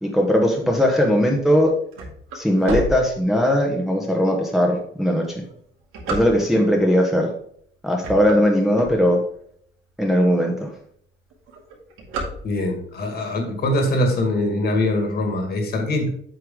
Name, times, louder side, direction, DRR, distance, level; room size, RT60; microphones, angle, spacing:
voice 1, 0.0-1.7 2.3-5.4 6.1-7.3 7.8-9.2 10.0-10.7, equal, ahead, 0 dB, 1.0 m, -19 dB
sound 1, 1.9-3.7 4.3-4.4 5.1-6.8 7.4-7.6 7.9-9.5 10.0-10.1 10.3-10.4 10.7-11.0 11.3-12.9, right 1 dB, 90° right, 2.7 m, -31 dB
voice 2, 12.4-16.1, left 1 dB, 50° left, 4 dB, 2.1 m, -22 dB
8.0 x 6.7 x 3.7 m, 0.65 s
cardioid pair, 150°, 21 cm